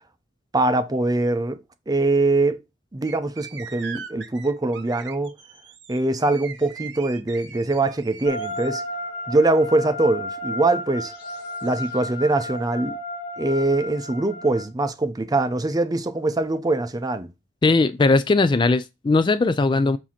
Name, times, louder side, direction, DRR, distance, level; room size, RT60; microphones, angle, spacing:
voice 1, 0.5-1.6 1.9-2.6 2.9-5.4 5.9-8.8 9.3-11.1 11.6-13.0 13.4-17.3, right 2 dB, 20° right, 0.6 m, -22 dB
sound 1, 3.0-8.7, right 6 dB, 70° right, 1.0 m, -40 dB
sound 2, 8.3-14.6, left 1 dB, 55° left, 1.7 m, -33 dB
voice 2, 17.6-20.0, left 3 dB, 25° left, 0.3 m, -19 dB
7.3 x 2.8 x 5.7 m
head